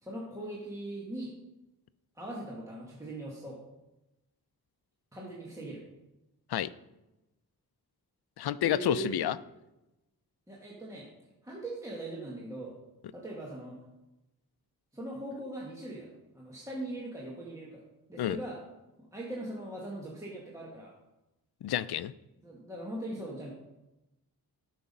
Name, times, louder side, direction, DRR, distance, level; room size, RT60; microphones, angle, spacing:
voice 1, 0.0-1.3 2.1-3.6 5.1-5.8 8.6-9.2 10.5-11.1 11.4-12.7 13.1-13.8 14.9-16.1 16.3-17.8 18.1-18.6 19.1-20.9 22.4-23.5, right 1 dB, 10° right, -4 dB, 1.5 m, -40 dB
voice 2, 8.4-9.4 18.2-18.4 21.6-22.1, left 11 dB, 80° left, 16 dB, 0.5 m, -29 dB
12.5 x 5.8 x 5.3 m, 0.98 s
wide cardioid pair, 175°, 38 cm